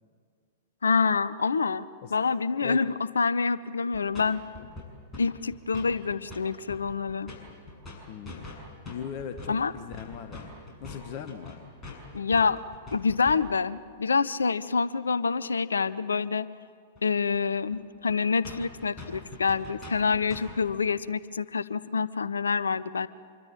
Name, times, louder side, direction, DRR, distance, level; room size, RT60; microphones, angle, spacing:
voice 1, 0.8-1.8 2.1-4.4 5.2-7.3 9.5-9.7 12.1-12.6 12.9-16.5 17.0-23.1, left 5 dB, 70° left, 18 dB, 0.7 m, -27 dB
sound 1, 3.9-4.3 4.5-5.3 5.5-6.4 6.7-13.6 16.9-17.0 17.3-17.4 17.7-17.8 18.1-18.2 18.4-20.6, left 2 dB, 20° left, 6.9 m, -43 dB
voice 2, 8.1-10.5 10.8-11.7, left 8 dB, 40° left, 8 dB, 1.3 m, -40 dB
26.5 x 23.0 x 8.7 m, 2.1 s
figure-of-eight pair, 100°, 0 cm